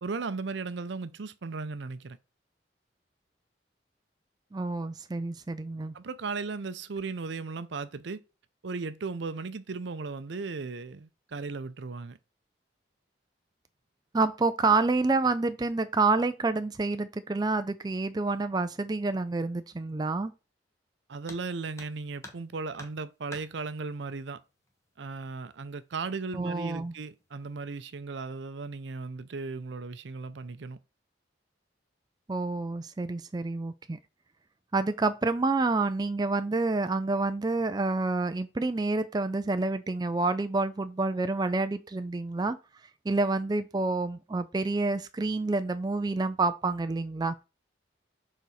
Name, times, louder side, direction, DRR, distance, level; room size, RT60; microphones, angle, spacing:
voice 1, 0.0-2.2 5.9-8.2 8.6-12.2 21.1-24.4 25.0-30.8, right 4 dB, 70° right, 0.6 m, -36 dB
voice 2, 4.5-5.9 14.1-20.3 26.3-26.9 32.3-34.0 34.7-42.6 43.1-47.4, right 3 dB, 20° right, 0.4 m, -28 dB
sound 1, 21.2-21.5 21.8-22.5 22.8-23.5 24.7-24.8 25.2-25.3 26.1-26.5 26.8-27.2, left 1 dB, 15° left, 1.0 m, -47 dB
6.5 x 4.0 x 4.2 m
head